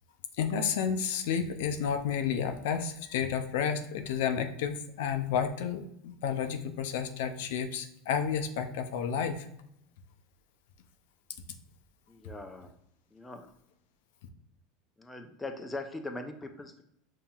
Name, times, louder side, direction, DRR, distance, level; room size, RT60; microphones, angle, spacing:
voice 1, 0.4-9.5, left 7 dB, 75° left, 8 dB, 0.4 m, -31 dB
voice 2, 12.1-12.7 13.1-13.5 15.0-16.8, left 2 dB, 10° left, 5 dB, 0.4 m, -41 dB
5.4 x 2.7 x 2.3 m, 0.75 s
supercardioid pair, 130°, 0 cm